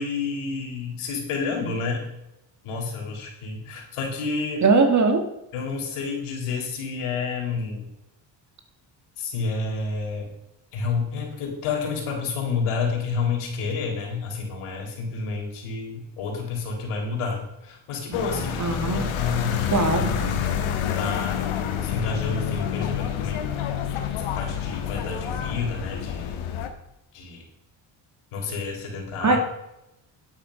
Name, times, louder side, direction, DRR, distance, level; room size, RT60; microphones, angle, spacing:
voice 1, 0.0-2.0 2.6-4.6 5.5-7.9 9.2-10.3 10.7-20.5 21.0-21.5 21.8-23.5 23.9-26.4 27.1-27.4 28.3-29.4, left 4 dB, 85° left, 0 dB, 3.9 m, -29 dB
voice 2, 4.6-5.3 18.6-19.1 19.7-20.4 29.2-29.4, right 4 dB, 35° right, 6 dB, 2.0 m, -21 dB
sound 1, 18.1-26.7, left 9 dB, 70° left, 1.7 m, -28 dB
11.0 x 8.6 x 5.1 m, 0.87 s
cardioid pair, 105°, 50 cm